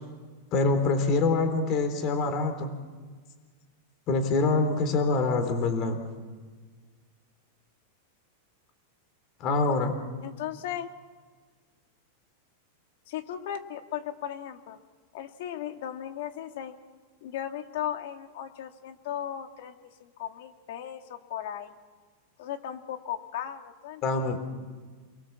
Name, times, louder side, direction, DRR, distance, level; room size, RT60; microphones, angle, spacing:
voice 1, 0.5-2.7 4.1-6.0 9.4-9.9 24.0-24.4, left 3 dB, 35° left, 7 dB, 3.7 m, -25 dB
voice 2, 10.2-10.9 13.1-14.8 15.1-16.7 17.2-19.7 20.0-21.7 22.4-24.4, left 10 dB, 65° left, 6 dB, 2.4 m, -36 dB
29.0 x 23.0 x 7.3 m, 1.5 s
supercardioid pair, 155°, 0 cm